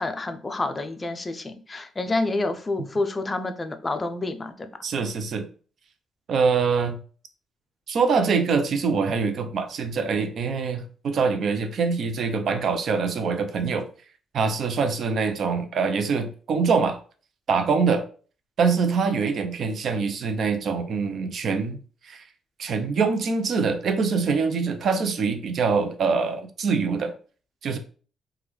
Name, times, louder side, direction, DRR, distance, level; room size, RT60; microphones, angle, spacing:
voice 1, 0.0-4.7, left 2 dB, 25° left, 8 dB, 0.4 m, -28 dB
voice 2, 4.8-5.4 6.3-7.0 7.9-13.9 14.3-17.0 17.5-18.0 18.6-21.8 22.0-22.2 22.6-27.1 27.6-27.8, right 5 dB, 60° right, 8 dB, 0.5 m, -24 dB
3.5 x 2.3 x 3.0 m, 0.40 s
cardioid pair, 90°, 0 cm